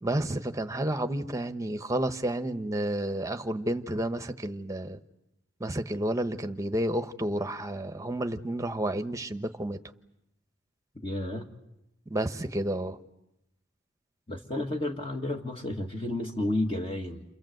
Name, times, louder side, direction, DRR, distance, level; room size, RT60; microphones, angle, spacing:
voice 1, 0.0-5.0 5.6-9.8 12.1-13.0, right 1 dB, 15° right, 1.0 m, -31 dB
voice 2, 11.0-11.5 14.3-17.2, left 1 dB, 25° left, 1.8 m, -31 dB
29.0 x 25.5 x 7.9 m
head